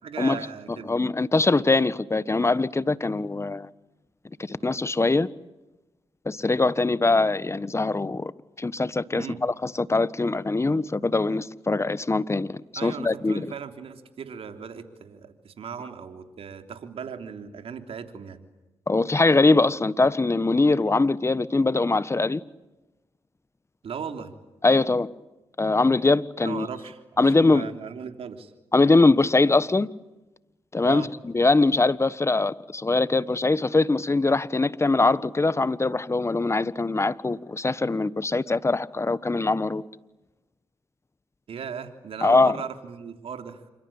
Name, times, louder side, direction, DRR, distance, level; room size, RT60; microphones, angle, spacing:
voice 1, 0.0-0.9 9.1-9.4 12.7-18.4 23.8-24.3 26.4-28.5 30.8-31.1 41.5-43.6, right 7 dB, 70° right, 3.4 m, -37 dB
voice 2, 0.9-3.7 4.5-5.3 6.2-8.3 8.6-13.5 18.9-22.4 24.6-25.1 25.6-26.7 27.2-27.7 28.7-29.9 30.7-39.8 42.2-42.6, left 3 dB, 25° left, 1.3 m, -22 dB
28.0 x 24.0 x 8.9 m
supercardioid pair, 45°, 10 cm